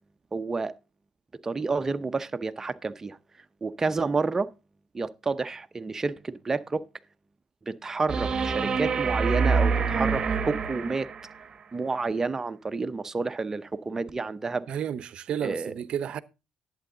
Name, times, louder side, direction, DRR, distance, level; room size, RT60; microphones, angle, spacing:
voice 1, 0.3-0.7 1.4-3.2 3.6-4.5 4.9-6.8 7.7-11.1 11.7-14.7 15.4-15.7, right 4 dB, 25° right, 0.7 m, -29 dB
sound 1, 8.1-11.4 14.1-14.2, right 5 dB, 40° right, 1.2 m, -26 dB
voice 2, 14.7-16.2, right 9 dB, 60° right, 0.7 m, -31 dB
11.0 x 8.5 x 3.8 m
cardioid pair, 105°, 2 cm